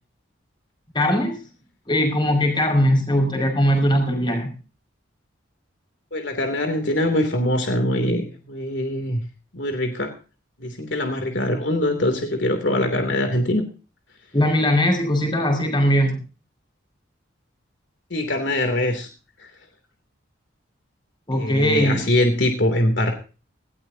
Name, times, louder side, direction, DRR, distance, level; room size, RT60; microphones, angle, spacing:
voice 1, 0.9-1.4 1.9-4.5 14.3-16.2 21.3-22.0, equal, 25° left, 4 dB, 5.8 m, -20 dB
voice 2, 6.1-9.2 9.5-10.1 10.6-13.6 18.1-19.1 19.4-19.5 21.3-23.1, left 1 dB, 60° left, 5 dB, 3.0 m, -23 dB
19.5 x 17.5 x 2.8 m, 0.36 s
head